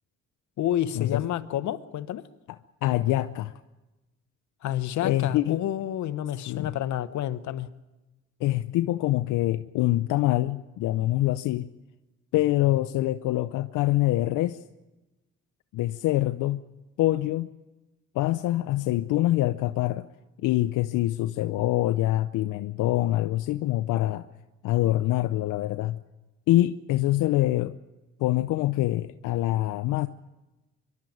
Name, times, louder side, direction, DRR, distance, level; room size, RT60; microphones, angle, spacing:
voice 1, 0.6-2.2 4.6-7.7, left 11 dB, 70° left, 1.0 m, -29 dB
voice 2, 2.5-3.5 5.0-5.6 6.5-6.7 8.4-11.7 12.3-14.6 15.7-16.6 17.0-17.5 18.1-20.1 20.4-24.3 24.6-26.0 26.5-27.7 28.2-30.1, left 15 dB, 90° left, 0.6 m, -25 dB
25.0 x 12.0 x 9.3 m
cardioid pair, 90°, 30 cm